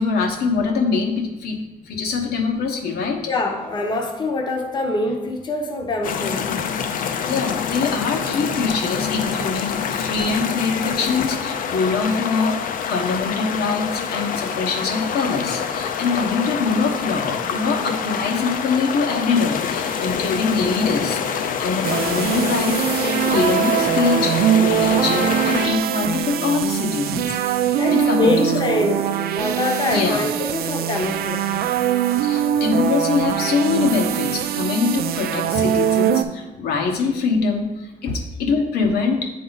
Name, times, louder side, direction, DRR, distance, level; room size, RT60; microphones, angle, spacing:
voice 1, 0.0-3.3 7.3-22.8 23.3-28.6 29.9-30.2 32.2-39.3, left 4 dB, 85° left, 2 dB, 1.0 m, -23 dB
voice 2, 3.3-6.6 27.8-29.0 29.4-31.6 38.1-38.2, left 2 dB, 30° left, 2 dB, 0.7 m, -24 dB
sound 1, 6.0-25.7, left 7 dB, 60° left, 0.5 m, -26 dB
sound 2, 21.8-36.2, right 10 dB, 80° right, 0.4 m, -22 dB
8.6 x 3.7 x 4.0 m, 1.1 s
cardioid pair, 155°, 16 cm